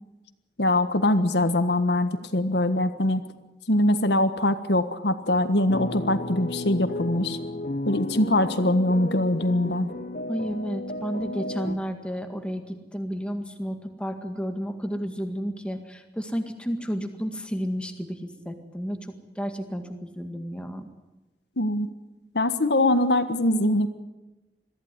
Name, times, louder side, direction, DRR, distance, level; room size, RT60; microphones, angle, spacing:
voice 1, 0.6-3.2 3.7-7.4 7.8-9.9 21.6-21.9 22.3-23.9, left 1 dB, 80° left, 9 dB, 1.5 m, -23 dB
sound 1, 5.7-11.8, left 1 dB, 50° left, 1.0 m, -33 dB
voice 2, 10.3-20.8, equal, 5° left, 6 dB, 1.9 m, -32 dB
22.5 x 15.0 x 9.9 m, 1.1 s
head